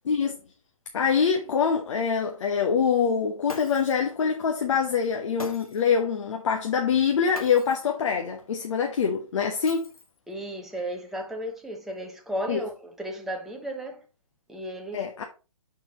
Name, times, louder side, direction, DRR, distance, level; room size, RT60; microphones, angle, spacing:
voice 1, 0.1-0.4 0.9-9.9 12.5-12.6 14.9-15.2, left 6 dB, 60° left, 1.3 m, -24 dB
Shatter, 3.5-4.1 5.4-6.0 7.3-7.9 9.7-10.3, left 3 dB, 90° left, 2.0 m, -41 dB
voice 2, 10.3-14.1 14.5-15.1, right 1 dB, ahead, 0.9 m, -34 dB
10.0 x 4.5 x 3.1 m
hypercardioid pair, 145°, 18 cm